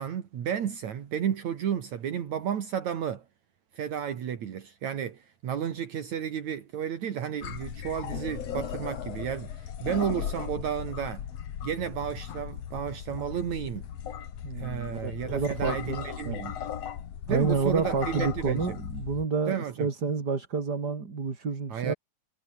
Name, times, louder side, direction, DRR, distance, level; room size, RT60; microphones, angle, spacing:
voice 1, 0.0-3.2 3.7-11.2 11.6-13.9 14.6-16.6 17.3-18.8 19.5-19.9 21.7-21.9, right 9 dB, 65° right, 3.2 m, -32 dB
sound 1, 7.4-19.2, left 9 dB, 60° left, 2.6 m, -37 dB
voice 2, 14.4-16.4 17.3-21.9, right 4 dB, 35° right, 3.2 m, -29 dB
omnidirectional pair, 3.5 m